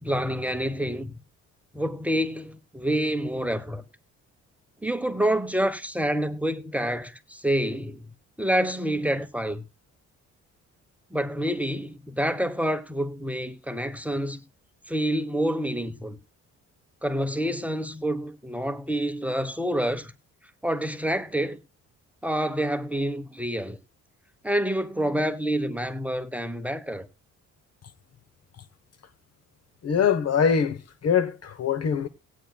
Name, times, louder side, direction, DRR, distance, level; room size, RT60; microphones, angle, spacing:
voice 1, 0.0-1.1 1.7-3.8 4.8-8.0 8.4-9.6 11.1-14.4 14.9-16.2 17.0-20.1 20.6-21.6 22.2-23.8 24.4-27.1, equal, 5° right, 1.0 m, -27 dB
voice 2, 29.8-32.1, left 7 dB, 55° left, 1.1 m, -23 dB
18.0 x 9.3 x 2.3 m
cardioid pair, 90°, 30 cm